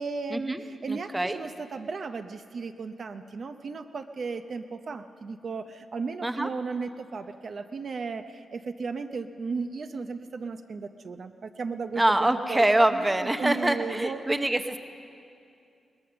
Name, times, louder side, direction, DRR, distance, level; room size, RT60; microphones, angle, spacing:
voice 1, 0.0-12.6 12.9-14.2, right 4 dB, 45° right, 8 dB, 0.6 m, -35 dB
voice 2, 0.9-1.4 6.2-6.5 12.0-14.8, right 1 dB, 10° right, 8 dB, 0.7 m, -25 dB
21.5 x 19.0 x 6.9 m, 2.5 s
wide cardioid pair, 175°, 0 cm